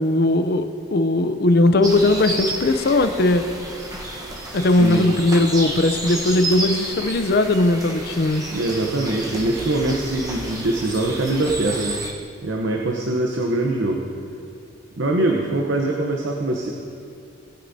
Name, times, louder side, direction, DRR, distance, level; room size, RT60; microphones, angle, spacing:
voice 1, 0.0-3.4 4.5-8.4, left 2 dB, 55° left, 9 dB, 0.6 m, -18 dB
sound 1, 1.8-12.1, right 1 dB, 20° right, 1.0 m, -31 dB
voice 2, 4.7-5.1 8.5-12.0 12.4-14.0 15.0-16.7, right 2 dB, 70° right, 0 dB, 0.8 m, -23 dB
18.0 x 9.4 x 2.7 m, 2.4 s
head